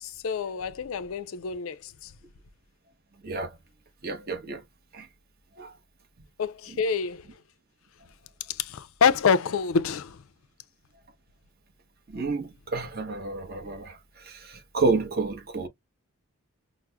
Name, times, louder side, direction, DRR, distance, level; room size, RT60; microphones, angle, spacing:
voice 1, 0.0-2.1 6.4-7.3 8.5-10.2, left 6 dB, 65° left, 0.4 m, -27 dB
voice 2, 3.2-3.6 4.0-4.6 4.9-5.1 5.6-5.7 12.1-15.7, right 3 dB, 45° right, 0.9 m, -30 dB
5.9 x 2.0 x 2.2 m
head